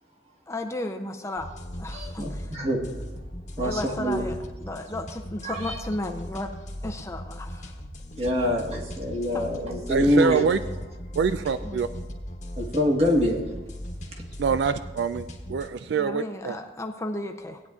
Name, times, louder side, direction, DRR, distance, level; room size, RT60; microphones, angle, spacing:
voice 1, 0.5-2.6 3.6-6.5 6.8-7.8 9.3-9.4 11.6-11.8 15.9-17.6, left 1 dB, 15° left, 5 dB, 0.5 m, -34 dB
sound 1, 1.4-15.7, equal, 40° left, 1.1 m, -38 dB
voice 2, 1.9-2.8 3.6-4.2 5.4-5.8 8.2-10.4 12.6-13.5 14.1-14.2, equal, 35° right, 0 dB, 1.5 m, -25 dB
voice 3, 9.9-10.6 11.2-11.9 14.4-16.6, right 5 dB, 65° right, 11 dB, 0.3 m, -25 dB
17.5 x 9.2 x 2.4 m, 1.1 s
head